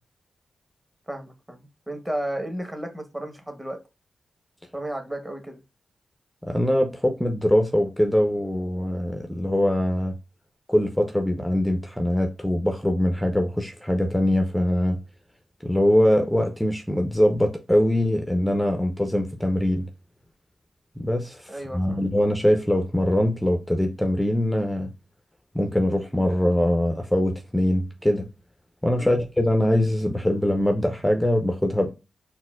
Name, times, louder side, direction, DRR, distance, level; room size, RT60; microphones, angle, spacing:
voice 1, 1.1-3.8 4.7-5.6 21.5-22.0 29.0-29.2, right 1 dB, 15° right, 0.9 m, -33 dB
voice 2, 6.4-10.1 10.7-15.0 15.6-19.9 21.0-24.9 25.5-28.3 28.8-31.9, left 1 dB, 5° left, 0.5 m, -22 dB
4.1 x 2.1 x 2.2 m
cardioid pair, 70°, 0 cm